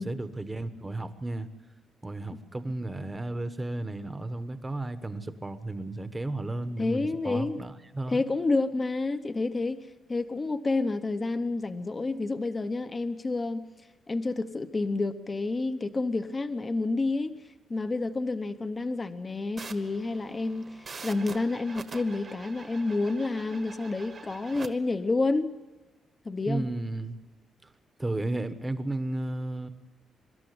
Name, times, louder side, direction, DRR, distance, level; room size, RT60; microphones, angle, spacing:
voice 1, 0.0-1.5 2.0-8.2 23.4-23.5 26.5-27.2 28.0-29.7, right 2 dB, 15° right, 11 dB, 1.1 m, -33 dB
voice 2, 6.8-7.6 8.1-9.8 10.1-13.6 14.1-17.4 17.7-20.8 21.0-25.5 26.3-26.7, left 3 dB, 20° left, 10 dB, 0.9 m, -29 dB
sound 1, 19.6-24.7, right 4 dB, 35° right, 1.4 m, -45 dB
24.5 x 13.0 x 9.4 m, 1.2 s
cardioid pair, 150°, 0 cm